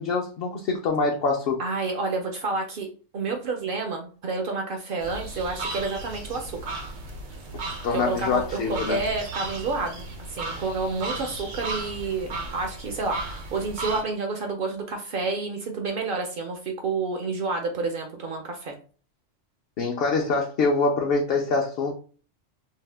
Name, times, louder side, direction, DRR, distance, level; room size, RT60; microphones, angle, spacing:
voice 1, 0.0-1.6 7.8-9.0 19.8-21.9, left 4 dB, 65° left, 0 dB, 0.6 m, -25 dB
voice 2, 1.6-2.9 3.1-6.7 7.9-18.8, right 3 dB, 60° right, 3 dB, 0.6 m, -29 dB
sound 1, 5.0-14.0, right 2 dB, 80° right, 1.1 m, -35 dB
2.7 x 2.1 x 3.2 m, 0.40 s
omnidirectional pair, 1.2 m